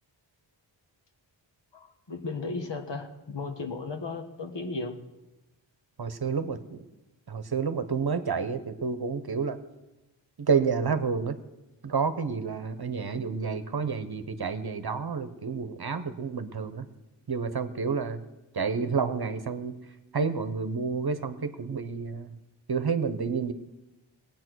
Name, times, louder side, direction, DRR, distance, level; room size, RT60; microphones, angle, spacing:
voice 1, 1.7-5.0, left 3 dB, 60° left, 6 dB, 1.6 m, -35 dB
voice 2, 6.0-6.9 7.3-9.6 10.4-11.4 11.8-16.9 17.3-18.2 18.5-19.8 20.1-22.4 22.7-23.5, right 5 dB, 50° right, 11 dB, 1.0 m, -29 dB
19.0 x 8.8 x 6.2 m, 1.0 s
wide cardioid pair, 95°, 48 cm